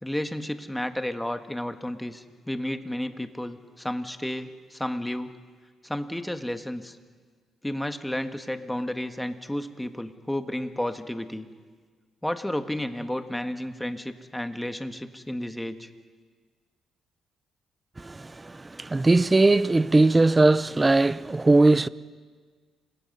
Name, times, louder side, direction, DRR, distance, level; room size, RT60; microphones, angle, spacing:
voice 1, 0.0-5.3 5.8-7.0 7.6-11.5 12.2-15.9, left 1 dB, 5° left, 1.6 m, -32 dB
voice 2, 18.0-21.9, right 2 dB, 20° right, 0.6 m, -20 dB
29.0 x 25.0 x 5.5 m
cardioid pair, 90°, 0 cm